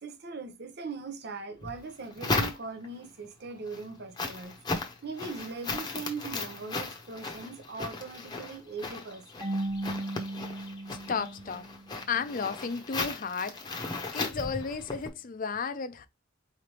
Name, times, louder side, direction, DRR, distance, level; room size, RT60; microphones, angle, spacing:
voice 1, 0.0-4.6 5.0-9.4, right 4 dB, 55° right, 0.8 m, -40 dB
sound 1, 1.6-3.0 3.5-15.1, left 3 dB, 20° left, 0.9 m, -36 dB
Marimba xylophone / Wood, 9.4-12.1, right 1 dB, 15° right, 1.0 m, -36 dB
voice 2, 10.9-11.7 12.1-13.8 14.1-16.1, left 5 dB, 45° left, 0.5 m, -33 dB
4.8 x 3.3 x 2.9 m
head